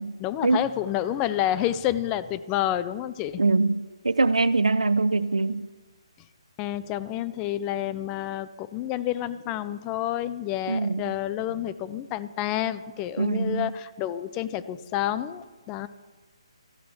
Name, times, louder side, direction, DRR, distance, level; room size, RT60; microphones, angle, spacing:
voice 1, 0.0-3.4 6.6-15.9, left 12 dB, 20° left, 0.3 m, -29 dB
voice 2, 3.4-5.7 10.7-11.0 13.2-13.7, right 3 dB, 90° right, 0.5 m, -23 dB
14.0 x 5.1 x 5.9 m
figure-of-eight pair, 150°, 3 cm